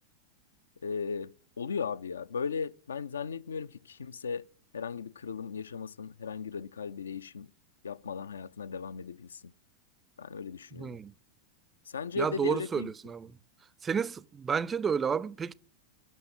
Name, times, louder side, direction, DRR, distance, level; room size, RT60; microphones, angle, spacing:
voice 1, 0.8-4.4 4.7-7.5 7.8-9.4 10.2-11.0 11.9-12.9, left 6 dB, 70° left, 0.4 m, -37 dB
voice 2, 10.8-11.1 12.2-13.3 13.8-15.5, right 6 dB, 20° right, 0.4 m, -31 dB
9.3 x 6.2 x 6.9 m
figure-of-eight pair, 90°, 0 cm